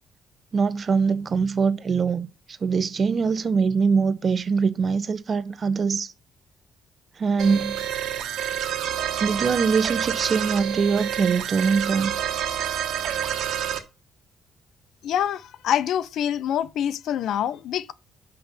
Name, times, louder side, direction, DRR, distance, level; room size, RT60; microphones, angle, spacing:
voice 1, 0.5-2.3 2.6-6.1 7.2-7.7 9.2-12.1, right 5 dB, 45° right, 0.8 m, -23 dB
sound 1, 7.4-13.8, right 10 dB, 80° right, 1.6 m, -28 dB
voice 2, 15.0-17.9, left 10 dB, 75° left, 0.5 m, -26 dB
5.7 x 5.3 x 6.8 m
cardioid pair, 90°, 0 cm